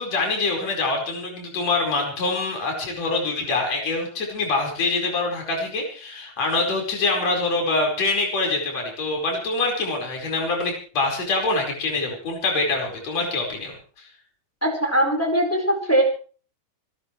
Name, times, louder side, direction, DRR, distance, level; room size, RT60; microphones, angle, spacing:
voice 1, 0.0-13.7, left 3 dB, 50° left, 1 dB, 6.0 m, -25 dB
voice 2, 14.6-16.0, right 1 dB, 5° left, 2 dB, 4.3 m, -21 dB
29.0 x 13.5 x 3.3 m, 0.41 s
omnidirectional pair, 3.7 m